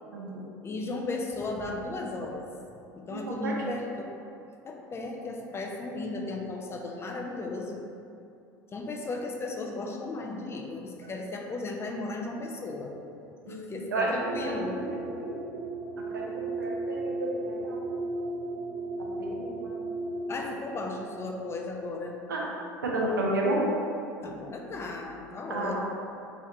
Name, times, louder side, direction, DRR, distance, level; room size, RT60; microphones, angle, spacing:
voice 1, 0.1-0.4 3.3-3.5 13.4-13.6 13.9-14.1 14.4-15.4 16.1-17.9 19.2-19.8 22.3-22.4 22.8-23.6 25.5-25.8, right 2 dB, 75° right, -3 dB, 0.6 m, -32 dB
voice 2, 0.6-2.4 2.9-4.1 4.6-7.8 8.7-12.9 13.5-14.8 20.3-22.1 24.2-25.8, left 2 dB, 25° left, 1 dB, 0.4 m, -35 dB
sound 1, 14.1-20.5, right 2 dB, 40° right, 0.8 m, -35 dB
3.1 x 3.0 x 3.7 m, 2.6 s
figure-of-eight pair, 70°, 11 cm